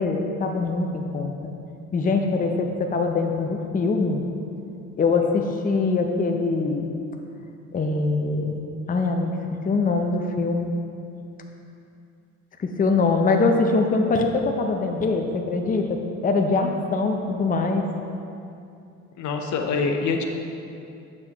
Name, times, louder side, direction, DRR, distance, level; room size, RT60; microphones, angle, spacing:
voice 1, 0.0-1.5 1.9-4.2 5.0-6.9 7.7-9.3 9.7-10.7 12.6-14.3 14.6-15.9 16.2-17.8, left 3 dB, 30° left, 3 dB, 0.6 m, -23 dB
voice 2, 19.2-20.2, left 4 dB, 70° left, 3 dB, 0.7 m, -25 dB
7.4 x 6.1 x 2.9 m, 2.6 s
cardioid pair, 90°, 30 cm